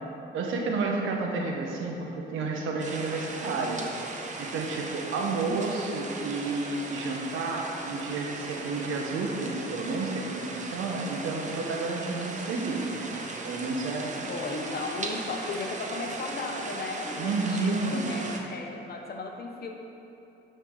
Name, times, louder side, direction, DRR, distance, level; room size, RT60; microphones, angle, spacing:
voice 1, 0.3-3.8 4.4-14.1 17.2-18.1, right 3 dB, 85° right, 0 dB, 1.1 m, -31 dB
sound 1, 2.8-18.4, right 3 dB, 40° right, 0.9 m, -38 dB
voice 2, 5.0-5.6 14.2-19.8, left 3 dB, 50° left, 2 dB, 1.1 m, -36 dB
10.5 x 5.3 x 3.9 m, 2.9 s
cardioid pair, 90°, 20 cm